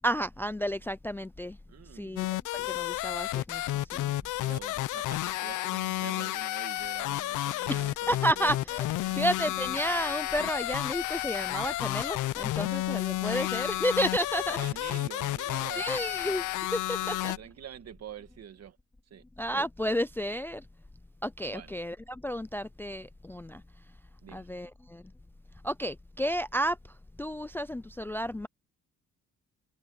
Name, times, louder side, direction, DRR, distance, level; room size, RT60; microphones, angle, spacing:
voice 1, 0.0-1.6 1.9-3.6 3.9-4.1 7.7-14.6 15.8-17.3 19.4-20.6 21.2-23.6 24.3-25.0 25.6-26.8 27.2-28.5, equal, 5° left, 0.4 m, -32 dB
voice 2, 1.7-2.2 4.2-8.6 9.0-9.3 14.6-15.9 17.0-18.8 19.1-19.5 21.5-21.7 24.2-24.5, right 9 dB, 55° right, 1.7 m, -46 dB
sound 1, 2.2-17.4, left 16 dB, 80° left, 0.7 m, -31 dB
cardioid pair, 90°, 30 cm